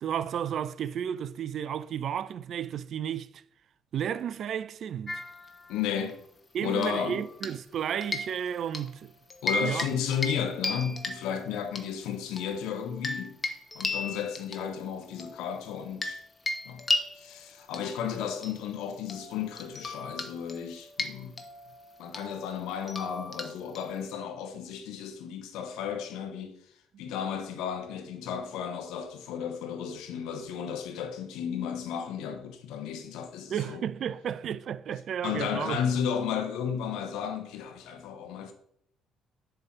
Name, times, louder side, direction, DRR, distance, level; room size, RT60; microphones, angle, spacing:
voice 1, 0.0-3.4 3.9-5.2 6.5-9.1 9.6-9.9 33.5-35.8, right 9 dB, 55° right, 0.4 m, -33 dB
sound 1, 5.1-6.1 6.8-7.7 8.0-8.9 9.3-9.9 10.1-10.4 10.6-11.8 12.4-16.2 16.5-24.1, left 2 dB, 30° left, 1.2 m, -36 dB
voice 2, 5.7-6.2 6.6-7.2 9.4-13.4 13.7-16.2 16.6-16.9 17.2-21.4 22.0-26.6 27.0-33.8 35.2-38.5, left 8 dB, 70° left, 1.0 m, -33 dB
7.4 x 3.4 x 6.0 m
hypercardioid pair, 50°, 0 cm